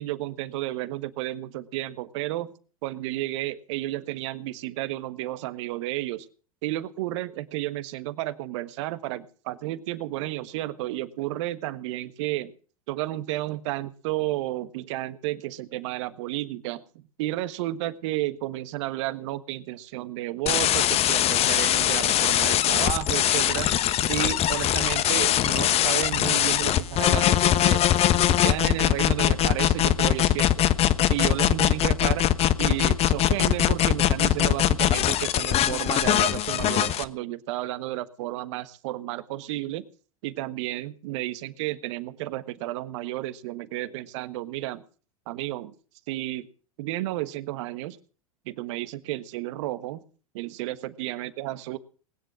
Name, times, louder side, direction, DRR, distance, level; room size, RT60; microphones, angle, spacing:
voice 1, 0.0-2.5 2.8-6.3 6.6-12.5 12.9-23.7 24.1-27.8 28.2-30.7 31.1-32.2 32.6-39.8 40.2-44.8 45.3-45.7 46.1-46.5 46.8-48.0 48.4-50.0 50.3-51.8, right 16 dB, 55° right, 14 dB, 1.4 m, -32 dB
sound 1, 20.5-37.0, left 12 dB, 35° left, 1.2 m, -22 dB
20.0 x 10.5 x 6.3 m, 0.40 s
figure-of-eight pair, 90°, 18 cm